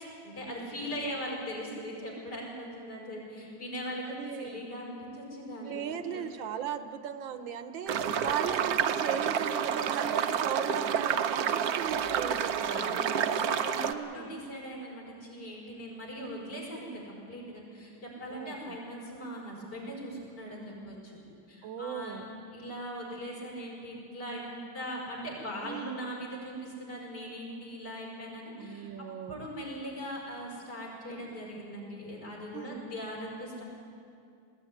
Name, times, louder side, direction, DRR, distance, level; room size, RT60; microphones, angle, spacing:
voice 1, 0.2-6.2 12.7-21.1 21.5-22.2 22.5-33.6, equal, 55° left, -3 dB, 6.0 m, -40 dB
voice 2, 4.1-4.6 5.6-13.1 13.8-14.4 18.3-18.8 21.6-22.3 25.6-26.0 28.6-29.4 32.5-32.8, right 8 dB, 80° right, 10 dB, 1.7 m, -37 dB
sound 1, 6.2-6.5 7.6-9.0 9.4-9.5 9.9-10.2 10.9-12.7, left 1 dB, 25° left, 1.5 m, -49 dB
sound 2, 7.9-13.9, right 8 dB, 60° right, 1.1 m, -29 dB
21.0 x 15.0 x 9.8 m, 2.5 s
omnidirectional pair, 2.1 m